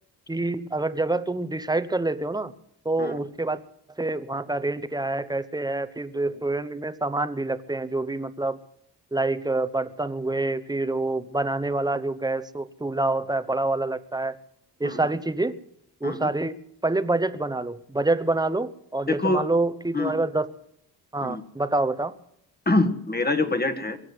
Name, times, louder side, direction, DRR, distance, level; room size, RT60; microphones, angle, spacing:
voice 1, 0.3-2.5 2.8-3.6 4.0-8.6 9.1-14.4 14.8-15.6 16.0-16.5 16.8-20.5 21.1-22.1, right 2 dB, 10° right, 13 dB, 0.9 m, -27 dB
voice 2, 19.1-19.5 19.9-20.1 21.2-21.4 22.6-24.0, left 2 dB, 25° left, 9 dB, 1.6 m, -25 dB
23.0 x 7.9 x 8.0 m, 0.74 s
cardioid pair, 95°, 41 cm